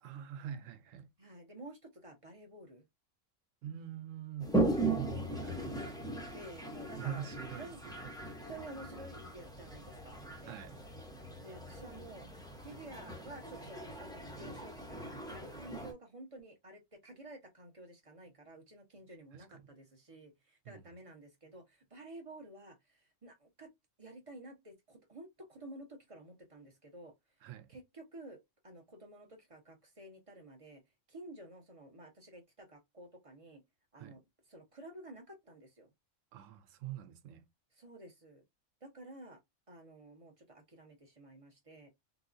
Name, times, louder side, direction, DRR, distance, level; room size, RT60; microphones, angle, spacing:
voice 1, 0.0-1.1 3.6-4.5 5.3-5.8 6.2-6.3 7.0-8.1 10.4-10.8 19.3-19.7 20.6-20.8 27.4-27.7 33.9-34.2 36.3-37.5, right 9 dB, 80° right, 1.0 m, -45 dB
voice 2, 1.2-2.8 5.3-5.7 6.3-7.3 7.6-7.8 8.5-10.6 11.4-12.3 12.6-23.7 24.0-27.1 27.7-28.4 28.6-30.8 31.1-33.6 33.9-34.2 34.5-35.9 37.7-38.4 38.8-39.4 39.7-41.9, right 1 dB, 30° right, 1.0 m, -52 dB
Toilet flush, 4.4-15.9, right 2 dB, 5° left, 0.5 m, -38 dB
3.9 x 2.2 x 2.5 m
omnidirectional pair, 1.3 m